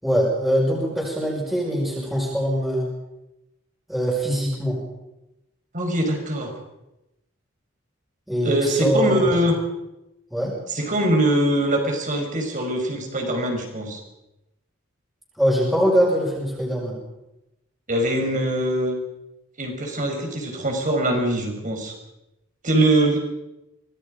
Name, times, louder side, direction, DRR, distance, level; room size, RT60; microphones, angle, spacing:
voice 1, 0.0-2.9 3.9-4.8 8.3-9.4 10.3-10.6 15.4-17.0, equal, ahead, -6 dB, 6.0 m, -22 dB
voice 2, 5.7-6.5 8.4-9.5 10.7-14.0 17.9-19.0 19.6-21.9 22.6-23.2, right 1 dB, 40° right, 3 dB, 5.3 m, -22 dB
25.0 x 20.5 x 5.2 m, 0.93 s
head